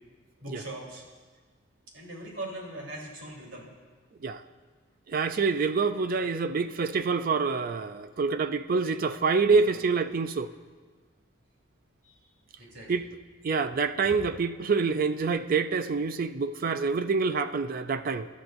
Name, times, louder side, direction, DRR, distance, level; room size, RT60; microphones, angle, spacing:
voice 1, 0.4-1.0 1.9-3.7 9.4-9.6 12.0-12.3 12.6-13.0, right 1 dB, 75° right, -3 dB, 3.6 m, -41 dB
voice 2, 5.1-10.5 12.9-13.0 13.4-18.3, right 4 dB, 45° right, 10 dB, 0.4 m, -26 dB
24.0 x 12.5 x 2.6 m, 1.4 s
head